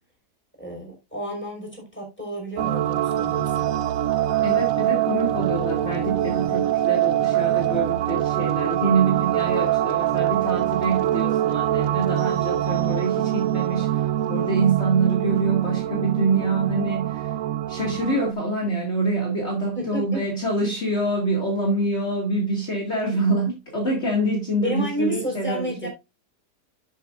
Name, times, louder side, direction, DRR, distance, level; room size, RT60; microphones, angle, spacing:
voice 1, 0.6-3.7 19.7-20.3 24.6-25.9, right 1 dB, 5° left, 5.2 m, -31 dB
sound 1, 2.6-18.3, right 12 dB, 70° right, 1.0 m, -24 dB
voice 2, 4.4-17.3 17.7-25.9, right 2 dB, 45° left, 2.5 m, -25 dB
12.0 x 7.5 x 2.5 m
omnidirectional pair, 1.6 m